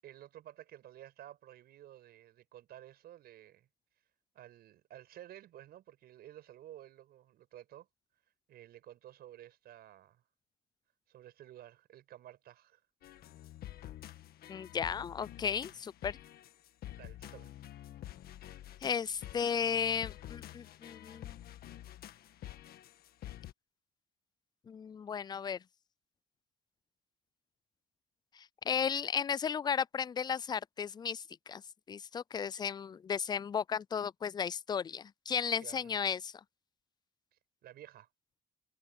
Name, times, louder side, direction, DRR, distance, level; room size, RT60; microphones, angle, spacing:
voice 1, 0.0-3.7 4.3-7.9 8.5-10.2 11.1-12.8 15.7-15.8 16.9-17.6 35.6-35.9 37.6-38.1, right 12 dB, 65° right, 6.4 m, -53 dB
sound 1, 13.0-23.5, left 12 dB, 65° left, 1.6 m, -48 dB
voice 2, 14.5-16.2 18.8-21.4 24.7-25.6 28.3-31.6 31.9-36.3, left 7 dB, 25° left, 0.3 m, -35 dB
cardioid pair, 110°, 17 cm